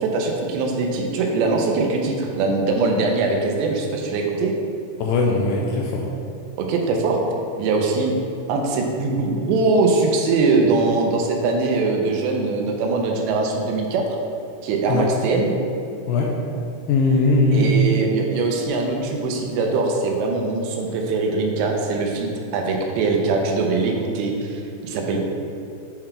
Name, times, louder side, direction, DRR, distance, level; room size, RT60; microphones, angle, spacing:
voice 1, 0.0-4.5 6.6-7.2 7.6-8.1 8.5-14.1 14.6-15.6 17.5-25.2, right 3 dB, 85° right, 1 dB, 2.9 m, -22 dB
voice 2, 5.0-6.0 14.9-15.1 16.1-16.3 16.9-17.7, left 3 dB, 80° left, 0 dB, 2.4 m, -19 dB
7.7 x 3.9 x 4.3 m, 2.6 s
omnidirectional pair, 5.1 m